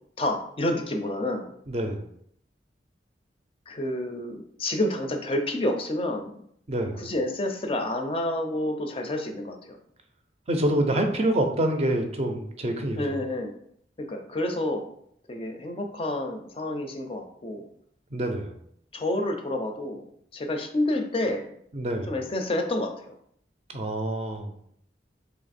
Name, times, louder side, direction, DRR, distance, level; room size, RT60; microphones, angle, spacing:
voice 1, 0.2-1.5 3.7-6.4 6.9-9.8 13.0-13.5 14.0-14.9 15.3-17.7 18.9-20.0 20.3-21.5 22.1-23.0, left 1 dB, 30° left, 4 dB, 0.4 m, -29 dB
voice 2, 1.7-2.1 6.7-7.1 10.5-13.2 18.1-18.6 21.7-22.1 23.7-24.5, right 1 dB, 35° right, 4 dB, 0.5 m, -27 dB
3.3 x 2.9 x 4.1 m, 0.69 s
head